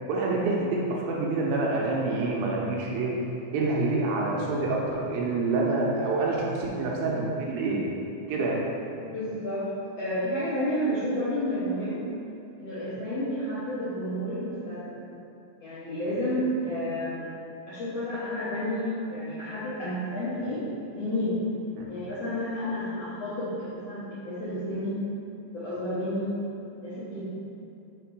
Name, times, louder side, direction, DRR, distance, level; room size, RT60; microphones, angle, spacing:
voice 1, 0.1-3.1 3.5-7.8 8.3-8.6 16.1-16.2 21.8-21.9, right 3 dB, 80° right, -3 dB, 2.4 m, -27 dB
voice 2, 9.1-9.6 10.0-12.0 12.6-14.8 15.6-17.3 17.7-20.6 20.9-21.4 21.9-24.9 25.5-26.3 26.8-27.2, equal, 70° left, -12 dB, 1.5 m, -30 dB
5.7 x 3.7 x 4.6 m, 2.7 s
omnidirectional pair, 4.3 m